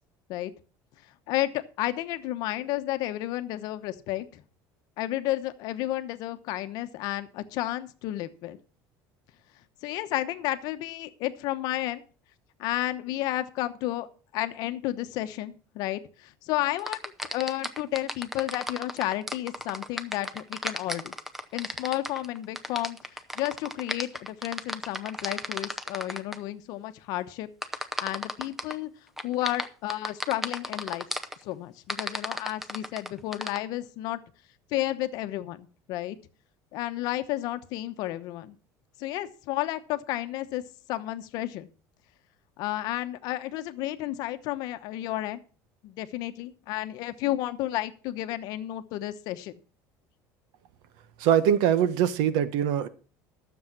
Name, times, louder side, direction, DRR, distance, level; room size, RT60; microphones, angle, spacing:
voice 1, 1.3-4.4 5.0-8.6 9.8-12.0 12.6-14.1 14.3-17.0 17.3-21.1 21.5-27.5 28.0-28.9 29.2-31.1 31.4-34.2 34.7-36.2 36.7-38.5 39.0-40.6 40.9-41.7 42.6-45.4 45.8-49.5, left 15 dB, 55° left, 1.0 m, -32 dB
sound 1, 16.8-26.4 27.6-28.7 29.2-31.3 31.9-33.6, equal, 5° right, 0.7 m, -34 dB
voice 2, 51.2-52.9, right 9 dB, 70° right, 1.1 m, -22 dB
12.5 x 7.2 x 5.9 m
cardioid pair, 165°, 8 cm